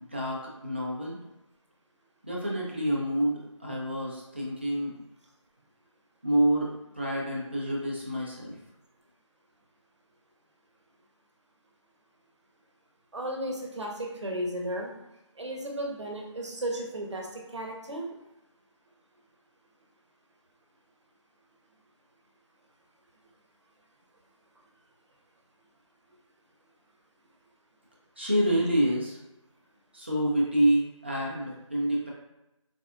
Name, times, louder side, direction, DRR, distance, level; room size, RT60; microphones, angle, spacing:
voice 1, 0.1-1.2 2.2-5.0 6.2-8.5 28.2-29.2 29.9-32.1, right 1 dB, 20° right, -4 dB, 0.4 m, -27 dB
voice 2, 13.1-14.9 15.4-18.1, right 1 dB, 65° right, 0 dB, 0.8 m, -34 dB
4.1 x 2.3 x 2.4 m, 0.93 s
figure-of-eight pair, 170°, 16 cm